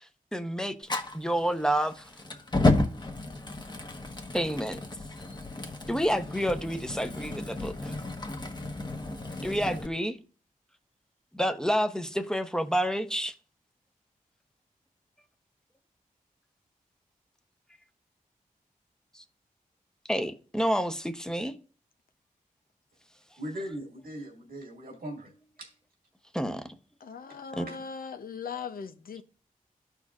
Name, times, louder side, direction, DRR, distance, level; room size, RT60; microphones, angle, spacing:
voice 1, 0.3-0.7 1.1-1.9 4.3-4.8 5.9-7.9 9.4-10.2 11.3-13.3 20.1-21.5 26.3-26.7 27.5-27.7, equal, 5° left, 0.8 m, -29 dB
Fire, 0.8-9.9, left 2 dB, 30° left, 1.1 m, -32 dB
voice 2, 23.4-25.3 25.6-25.7 27.3-27.4 27.6-27.8, equal, 85° right, 1.9 m, -39 dB
voice 3, 27.0-29.2, left 6 dB, 75° left, 0.6 m, -39 dB
13.0 x 4.5 x 2.4 m
cardioid pair, 45°, 15 cm